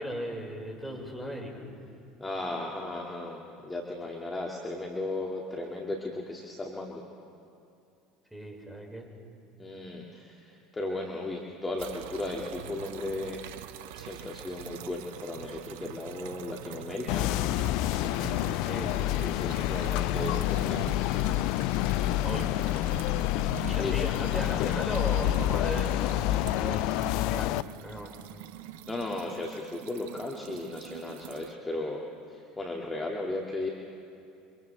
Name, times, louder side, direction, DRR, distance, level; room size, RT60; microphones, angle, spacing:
voice 1, 0.0-1.6 8.3-9.1 18.7-18.9 22.2-22.5 23.7-28.1, equal, ahead, -1 dB, 5.6 m, -37 dB
voice 2, 2.2-7.0 9.6-13.4 13.9-17.3 18.9-21.0 23.5-24.0 28.9-32.0 32.3-33.7, left 2 dB, 15° left, -1 dB, 2.3 m, -36 dB
sound 1, 11.8-31.5, right 11 dB, 70° right, 0.7 m, -44 dB
sound 2, 17.1-27.6, left 15 dB, 60° left, 0.4 m, -28 dB
29.5 x 25.5 x 3.5 m, 2.6 s
hypercardioid pair, 70°, 0 cm